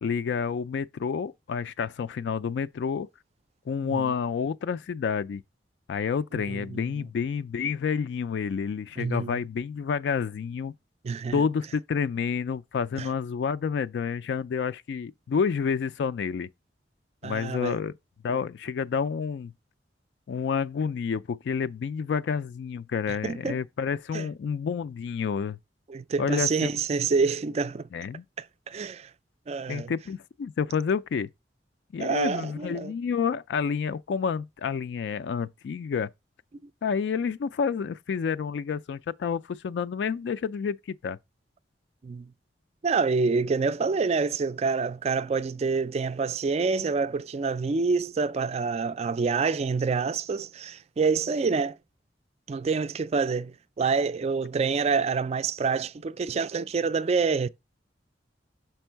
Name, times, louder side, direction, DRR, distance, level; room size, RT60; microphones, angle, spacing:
voice 1, 0.0-3.1 3.7-5.4 5.9-10.7 11.3-16.5 17.2-17.9 18.2-19.5 20.3-25.6 26.2-26.7 27.9-28.2 29.7-31.3 31.9-36.1 36.8-41.2, left 6 dB, 65° left, 0.3 m, -29 dB
voice 2, 6.3-6.8 9.0-9.4 11.0-11.4 13.0-13.1 17.2-17.8 23.1-23.6 24.1-24.3 25.9-27.9 28.4-29.1 29.5-29.9 32.0-32.9 42.0-42.3 42.8-51.8 52.5-57.5, right 4 dB, 35° right, 0.3 m, -27 dB
6.1 x 4.5 x 4.5 m
head